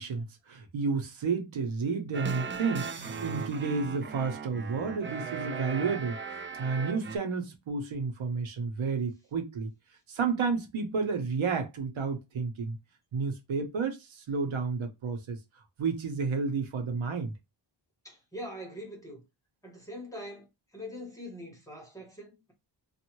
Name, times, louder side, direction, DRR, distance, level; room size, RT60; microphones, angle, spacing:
voice 1, 0.0-6.2 6.6-9.7 10.1-12.8 13.1-15.4 15.8-17.3, right 4 dB, 80° right, 1.0 m, -31 dB
sound 1, 2.1-7.2, right 5 dB, 30° right, 0.3 m, -38 dB
voice 2, 18.0-19.2 19.6-22.5, equal, 5° left, 1.4 m, -43 dB
2.7 x 2.5 x 3.0 m
wide cardioid pair, 115°, 47 cm